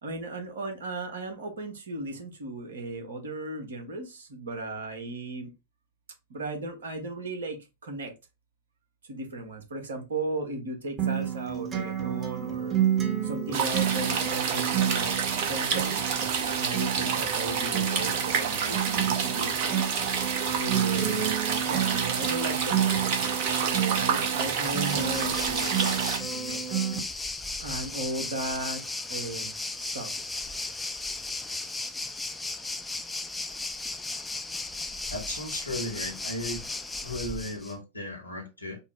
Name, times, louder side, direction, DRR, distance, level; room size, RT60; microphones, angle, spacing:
voice 1, 0.0-5.5 6.3-8.1 9.1-12.8 13.2-19.9 20.5-21.4 21.6-26.0 26.3-26.9 27.6-28.8 29.1-30.1, right 2 dB, 65° right, 1.2 m, -36 dB
Acoustic guitar, 11.0-27.0, right 10 dB, 25° right, 1.0 m, -30 dB
sound 1, 13.5-26.2, right 6 dB, 50° right, 0.9 m, -28 dB
Waves surf, 24.4-37.7, left 2 dB, 10° left, 0.4 m, -36 dB
voice 2, 35.1-36.6 37.0-38.8, left 1 dB, 85° left, 1.2 m, -35 dB
4.4 x 2.0 x 3.5 m
figure-of-eight pair, 90°, 0 cm